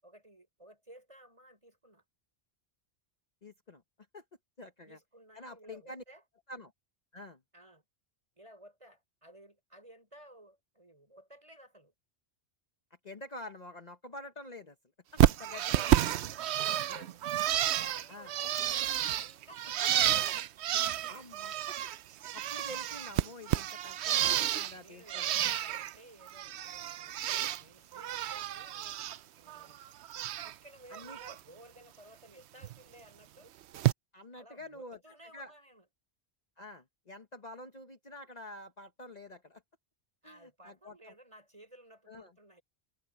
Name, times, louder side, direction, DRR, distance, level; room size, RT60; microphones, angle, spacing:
voice 1, 0.0-2.0 4.8-6.2 7.5-7.8 8.3-11.9 15.4-15.8 16.1-17.2 17.9-18.6 19.1-20.4 24.0-27.2 27.5-29.1 29.4-29.8 30.4-33.5 34.3-35.8 40.2-42.6, right 1 dB, 30° right, 6.4 m, -56 dB
voice 2, 3.4-3.8 4.1-4.2 4.6-5.0 5.3-6.0 6.5-6.7 7.1-7.4 13.0-14.8 15.1-16.1 16.9-17.0 18.1-18.3 19.8-20.3 21.1-21.8 22.3-25.3 30.9-31.2 34.1-35.0 35.3-35.5 36.6-39.6 40.2-41.1 42.1-42.3, left 1 dB, 40° left, 1.3 m, -47 dB
Bird, 15.2-22.0 22.2-24.7 25.1-25.9 26.3-27.6 27.9-29.2 29.5-30.5 30.9-31.3 32.6-32.7 33.7-33.9, right 12 dB, 85° right, 0.9 m, -30 dB
omnidirectional pair, 1.1 m